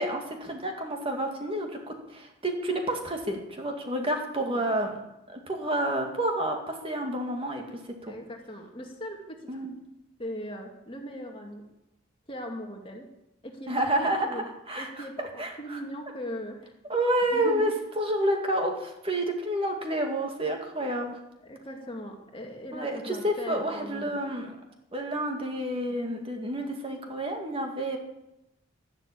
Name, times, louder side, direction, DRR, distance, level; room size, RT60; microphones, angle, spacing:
voice 1, 0.0-5.0 5.3-8.1 9.5-9.8 13.7-15.8 16.9-17.7 18.0-21.2 22.7-24.5 24.9-28.0, right 1 dB, 25° right, 3 dB, 2.2 m, -29 dB
voice 2, 8.1-9.6 10.2-11.6 12.3-13.1 13.4-14.5 14.7-16.7 17.3-17.7 21.4-24.2, equal, 25° left, 2 dB, 2.3 m, -39 dB
12.5 x 12.0 x 8.6 m, 0.89 s
head